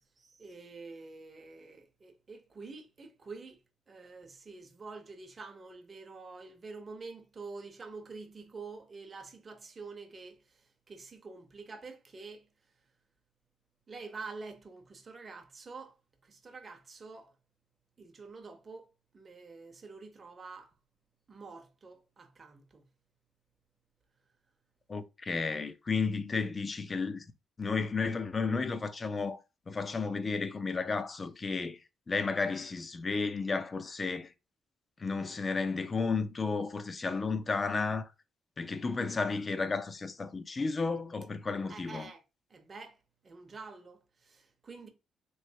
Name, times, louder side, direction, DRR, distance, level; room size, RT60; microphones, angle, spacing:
voice 1, 0.2-3.6 3.9-10.4 10.9-12.5 13.9-15.9 16.2-17.3 18.0-20.7 21.3-22.8 41.7-42.2 42.5-43.0 43.2-44.9, right 4 dB, 35° right, 0.7 m, -47 dB
voice 2, 24.9-27.3 27.6-31.8 32.1-34.3 35.0-38.1 38.6-42.1, left 4 dB, 30° left, 0.5 m, -33 dB
3.1 x 3.0 x 2.8 m
cardioid pair, 90°, 0 cm